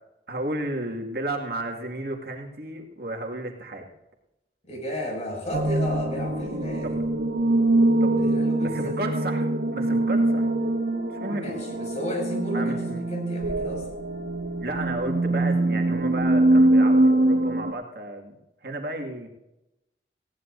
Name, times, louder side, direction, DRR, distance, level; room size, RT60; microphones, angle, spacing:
voice 1, 0.3-3.9 6.8-7.0 8.0-8.2 8.6-10.5 11.1-11.5 12.5-13.0 14.6-18.4 18.6-19.3, right 2 dB, 60° right, 1 dB, 2.2 m, -33 dB
voice 2, 4.6-7.0 8.2-9.1 11.2-13.9, equal, 40° left, 0 dB, 6.5 m, -33 dB
sound 1, 5.5-17.7, right 1 dB, 80° right, 1.9 m, -23 dB
20.0 x 17.0 x 2.7 m, 0.92 s
head